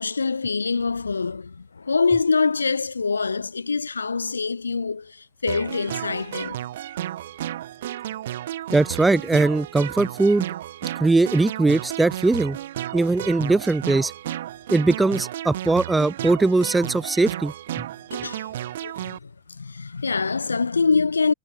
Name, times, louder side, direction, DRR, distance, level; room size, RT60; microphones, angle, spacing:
voice 1, 0.0-6.6 18.1-18.5 18.8-21.3, left 4 dB, 75° left, 2.8 m, -25 dB
sound 1, 5.5-19.2, right 12 dB, 60° right, 2.7 m, -33 dB
voice 2, 8.7-10.5 11.0-12.6 12.9-14.1 14.7-17.8, right 3 dB, 10° right, 0.5 m, -20 dB
figure-of-eight pair, 90°, 0 cm